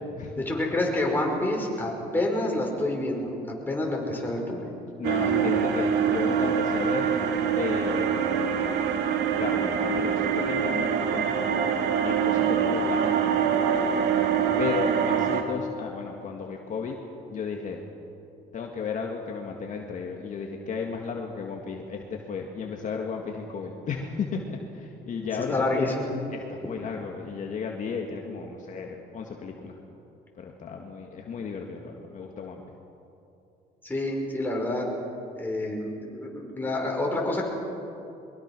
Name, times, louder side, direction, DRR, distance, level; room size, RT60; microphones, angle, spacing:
voice 1, 0.3-3.3 3.7-4.7 5.3-5.5 14.5-14.6 25.5-26.1 33.8-34.9 35.4-37.5, left 1 dB, 10° left, -1 dB, 5.5 m, -28 dB
voice 2, 5.0-7.1 7.5-8.2 9.4-11.7 12.0-13.5 14.6-17.0 17.3-17.8 18.5-25.9 26.3-29.7 30.4-32.6, left 5 dB, 50° left, 1 dB, 2.0 m, -34 dB
sound 1, 5.0-15.4, right 7 dB, 80° right, 1.9 m, -25 dB
22.5 x 22.5 x 6.2 m, 2.8 s
cardioid pair, 110°, 17 cm